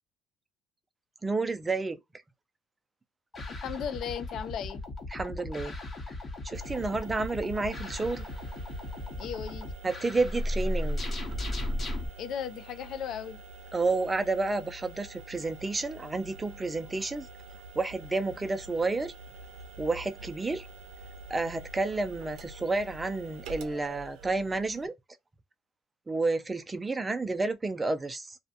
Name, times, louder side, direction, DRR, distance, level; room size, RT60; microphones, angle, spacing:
voice 1, 1.2-2.0 5.1-5.7 6.4-8.2 9.8-11.1 13.7-17.3 17.8-19.1 19.8-20.7 21.3-24.9 26.1-28.4, right 3 dB, 15° right, 0.4 m, -30 dB
sound 1, 3.3-12.1, left 1 dB, 30° left, 0.8 m, -35 dB
voice 2, 3.5-4.8 9.2-9.7 12.2-13.4, left 8 dB, 60° left, 0.3 m, -36 dB
sound 2, 6.5-24.9, right 3 dB, 85° right, 0.4 m, -47 dB
2.4 x 2.1 x 2.7 m
cardioid pair, 130°, 0 cm